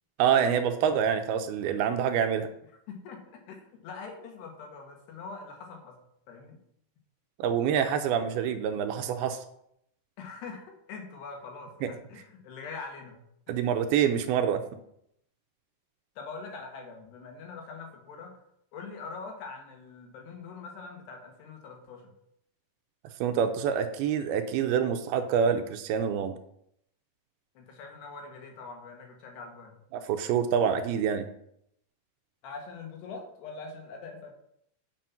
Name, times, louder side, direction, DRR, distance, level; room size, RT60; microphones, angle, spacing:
voice 1, 0.2-2.5 7.4-9.4 11.8-11.9 13.5-14.6 23.2-26.4 29.9-31.3, right 8 dB, 80° right, 7 dB, 2.5 m, -26 dB
voice 2, 2.9-6.0 6.3-6.6 10.2-13.2 13.5-13.6 16.2-18.4 18.7-22.1 27.6-29.8 32.4-34.3, left 4 dB, 85° left, 2 dB, 3.7 m, -43 dB
7.7 x 7.3 x 5.8 m, 0.74 s
omnidirectional pair, 4.7 m